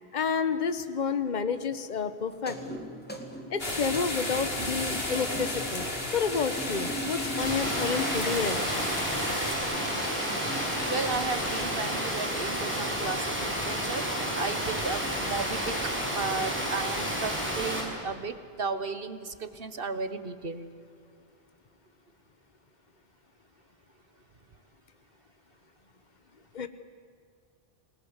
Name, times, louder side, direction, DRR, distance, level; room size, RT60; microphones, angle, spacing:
voice 1, 0.1-2.8 3.5-5.9 6.1-8.7 26.5-26.7, left 6 dB, 50° left, 11 dB, 1.3 m, -30 dB
sound 1, 2.3-17.4, equal, 10° left, 2.8 m, -41 dB
sound 2, 3.6-9.5, left 1 dB, 70° left, 3.7 m, -33 dB
Water, 7.4-17.8, equal, 10° right, 6.3 m, -31 dB
voice 2, 10.9-14.0 14.4-15.8 16.1-20.7, right 4 dB, 65° right, 11 dB, 1.7 m, -34 dB
29.5 x 20.5 x 8.2 m, 2.4 s
omnidirectional pair, 1.0 m